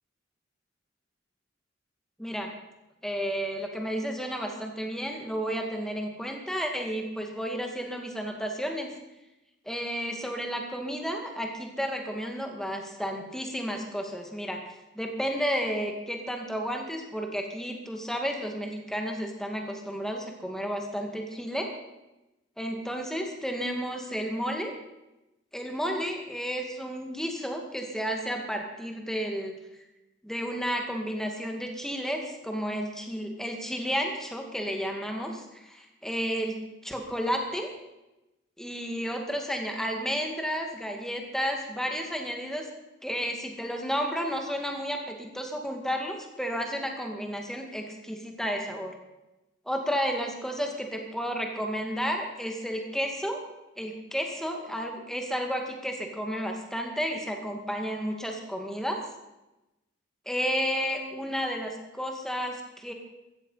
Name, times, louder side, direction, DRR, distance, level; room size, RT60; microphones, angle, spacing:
voice 1, 3.0-8.9 9.7-14.6 15.0-21.7 22.6-24.7 25.5-29.5 30.2-37.7 38.6-42.7 43.0-48.9 49.7-53.4 53.8-59.0 60.3-62.9, equal, 5° left, 3 dB, 2.1 m, -32 dB
15.0 x 14.0 x 5.7 m, 0.98 s
head